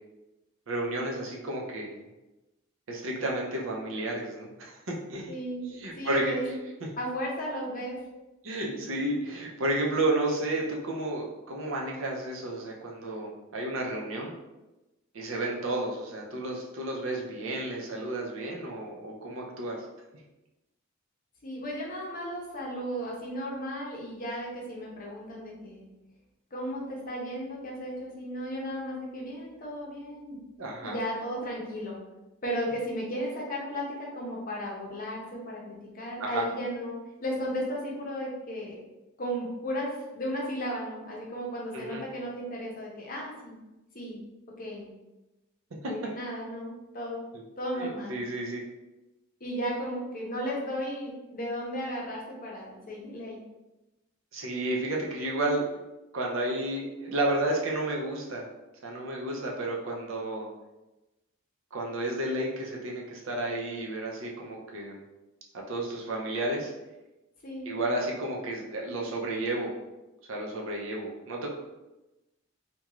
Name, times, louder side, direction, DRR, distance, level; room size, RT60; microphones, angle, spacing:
voice 1, 0.7-2.0 2.9-5.3 5.7-6.3 8.4-14.3 15.1-19.8 30.6-30.9 36.2-36.4 41.7-42.0 47.3-47.4 47.8-48.6 54.3-55.7 56.1-58.5 58.8-60.5 61.7-65.0 65.7-66.7 67.7-69.7 70.3-71.5, right 1 dB, 70° right, -1 dB, 0.6 m, -32 dB
voice 2, 5.3-6.5 7.0-8.0 21.4-25.8 26.5-30.4 30.8-32.0 32.4-38.8 39.2-43.6 43.9-44.2 44.6-44.9 45.9-47.2 47.6-48.2 49.4-53.4 67.4-67.8, equal, 45° left, -3 dB, 0.7 m, -35 dB
2.4 x 2.2 x 2.9 m, 1.0 s
head